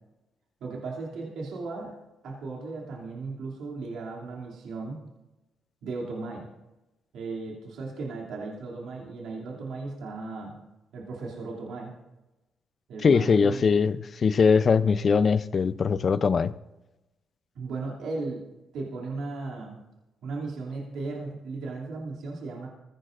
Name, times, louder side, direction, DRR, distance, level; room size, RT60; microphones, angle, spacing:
voice 1, 0.6-1.9 2.2-5.0 5.8-6.5 7.1-10.6 10.9-11.9 12.9-13.7 17.5-18.4 18.7-19.8 20.2-22.7, right 3 dB, 75° right, -3 dB, 2.8 m, -36 dB
voice 2, 13.0-16.5, left 5 dB, 45° left, 15 dB, 0.5 m, -21 dB
20.5 x 16.0 x 2.6 m, 1.0 s
cardioid pair, 90°, 0 cm